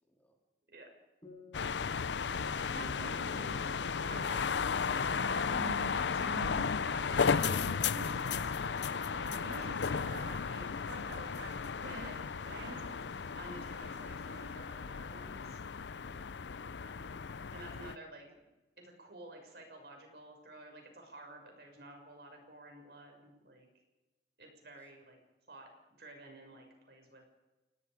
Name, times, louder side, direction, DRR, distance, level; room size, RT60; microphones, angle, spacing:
voice 1, 0.1-0.4 16.0-16.3 24.8-24.9, equal, 10° left, 1 dB, 2.9 m, -56 dB
sound 1, 1.2-4.7, left 2 dB, 25° left, 7.5 m, -59 dB
sound 2, 1.5-18.0, left 6 dB, 80° left, 0.6 m, -34 dB
sound 3, 2.2-14.5, right 2 dB, 80° right, 1.0 m, -48 dB
voice 2, 5.2-5.6 5.9-10.7 11.7-15.6 16.8-17.2 17.5-18.4 18.8-23.7 24.4-25.2 25.5-25.7 26.0-27.2, right 1 dB, 60° right, 3 dB, 6.1 m, -52 dB
28.5 x 19.0 x 5.1 m, 1.1 s
head